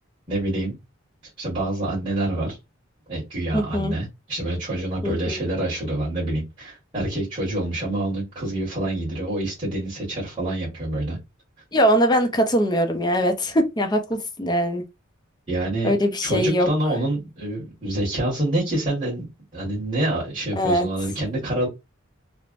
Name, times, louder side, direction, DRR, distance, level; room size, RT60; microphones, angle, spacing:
voice 1, 0.3-0.8 1.4-2.6 3.1-11.2 15.5-15.9 16.2-19.2 19.5-21.7, right 1 dB, 25° right, 1.4 m, -26 dB
voice 2, 3.5-3.9 5.0-5.4 11.7-14.8 15.8-16.7 20.6-20.9, equal, 20° left, 0.5 m, -21 dB
3.2 x 2.1 x 2.4 m
head